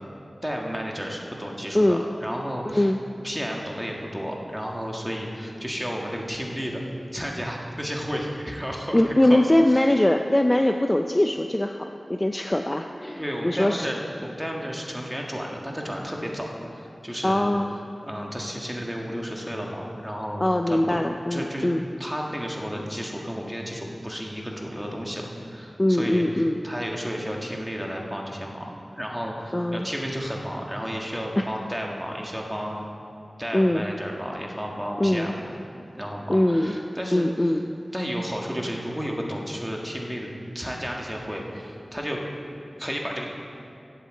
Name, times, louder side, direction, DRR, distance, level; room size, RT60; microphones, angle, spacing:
voice 1, 0.4-2.9 3.2-6.8 7.1-9.9 13.2-17.6 18.0-20.8 21.3-21.7 22.0-32.8 33.4-35.5 35.9-37.6 37.9-40.3 40.5-42.2 42.8-43.2, equal, 5° right, -1 dB, 1.6 m, -32 dB
voice 2, 2.7-3.0 8.9-13.9 17.2-17.8 20.4-21.8 25.8-26.6 29.5-29.9 31.4-31.5 33.5-33.9 35.0-35.3 36.3-36.8 37.1-37.6, left 1 dB, 25° left, 5 dB, 0.4 m, -22 dB
8.3 x 8.0 x 7.5 m, 2.6 s
wide cardioid pair, 65°, 0 cm